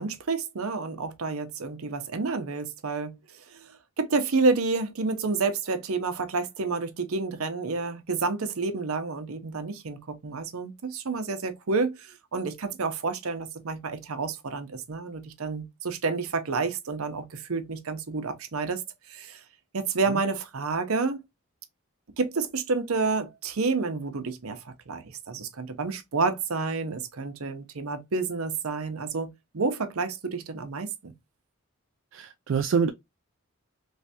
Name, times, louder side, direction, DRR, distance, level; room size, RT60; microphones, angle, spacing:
voice 1, 0.0-3.1 3.5-3.7 4.0-18.8 19.1-19.4 19.7-21.2 22.2-31.1, right 4 dB, 85° right, 0.7 m, -29 dB
voice 2, 32.1-32.9, right 6 dB, 65° right, 0.3 m, -26 dB
3.3 x 3.1 x 2.8 m
head